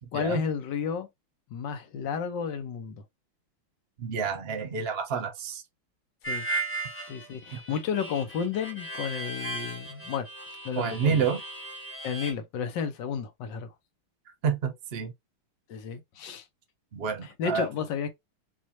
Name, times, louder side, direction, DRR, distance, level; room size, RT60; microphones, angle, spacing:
voice 1, 0.1-1.1 1.5-3.0 6.3-6.5 7.1-10.3 10.6-11.2 12.0-13.7 15.7-16.5 17.2-18.1, left 6 dB, 65° left, 1.4 m, -32 dB
voice 2, 4.0-5.6 7.5-7.6 10.8-11.4 14.4-15.1 16.9-17.7, right 6 dB, 85° right, 0.5 m, -29 dB
Harmonica, 6.2-12.3, right 2 dB, 10° left, 1.0 m, -36 dB
6.3 x 2.5 x 2.8 m
omnidirectional pair, 2.4 m